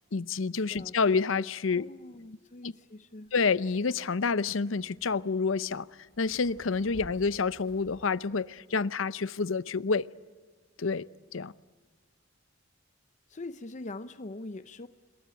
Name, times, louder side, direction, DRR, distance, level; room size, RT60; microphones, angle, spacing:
voice 1, 0.1-1.9 2.6-2.7 3.3-5.9 6.2-10.1 10.8-11.5, left 4 dB, 75° left, 0.7 m, -28 dB
voice 2, 1.7-3.3 13.3-14.9, left 2 dB, 40° left, 0.7 m, -43 dB
sound 1, 3.2-8.1, equal, 70° right, 4.5 m, -54 dB
26.5 x 22.0 x 9.0 m
head